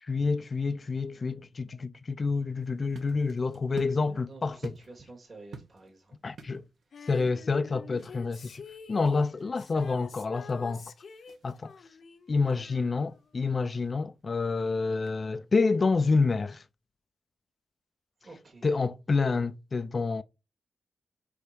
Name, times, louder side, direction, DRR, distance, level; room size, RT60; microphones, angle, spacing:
voice 1, 0.0-4.7 6.2-6.6 7.1-8.6 8.9-10.9 11.4-11.7 12.3-16.6 18.6-20.2, left 4 dB, 45° left, 0.4 m, -28 dB
sound 1, 2.6-16.1, right 5 dB, 80° right, 1.1 m, -52 dB
voice 2, 4.1-6.2 18.2-18.7, right 2 dB, 45° right, 2.6 m, -50 dB
Female singing, 6.9-13.5 13.8-13.9, left 6 dB, 70° left, 0.9 m, -48 dB
5.0 x 4.3 x 4.5 m
cardioid pair, 65°, 0 cm